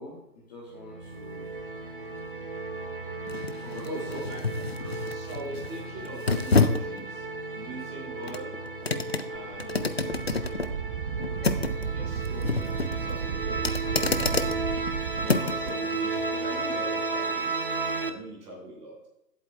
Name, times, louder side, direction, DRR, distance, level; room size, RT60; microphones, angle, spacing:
voice 1, 0.0-1.6 3.6-4.2 4.8-5.1, left 2 dB, 25° left, -3 dB, 1.3 m, -45 dB
sound 1, 0.7-18.1, right 3 dB, 35° right, 0.4 m, -34 dB
sound 2, 1.0-15.7 16.2-16.3, left 3 dB, 40° left, 0.4 m, -30 dB
voice 2, 3.5-4.4 5.0-7.2 7.5-8.5 9.3-10.1 11.9-14.4 15.2-19.0, right 1 dB, 15° right, -4 dB, 3.0 m, -42 dB
Wind, 9.3-15.7, right 7 dB, 65° right, 0.7 m, -34 dB
15.0 x 8.1 x 2.3 m, 0.88 s
figure-of-eight pair, 145°, 49 cm